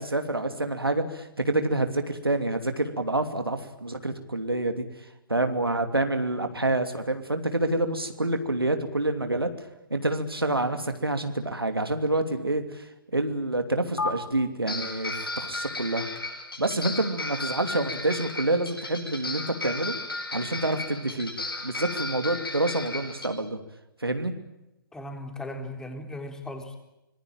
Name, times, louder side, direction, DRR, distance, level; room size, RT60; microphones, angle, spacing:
voice 1, 0.0-4.8 5.3-9.5 9.9-12.9 13.1-16.1 16.6-19.9 20.3-21.3 21.6-23.6 24.0-24.3, right 2 dB, 85° right, 7 dB, 2.8 m, -27 dB
sound 1, 14.0-14.1 14.7-23.3, left 2 dB, 75° left, 7.8 m, -34 dB
voice 2, 24.9-26.8, left 1 dB, 5° left, 5 dB, 3.7 m, -37 dB
25.5 x 21.5 x 8.8 m, 0.93 s
figure-of-eight pair, 125°, 12 cm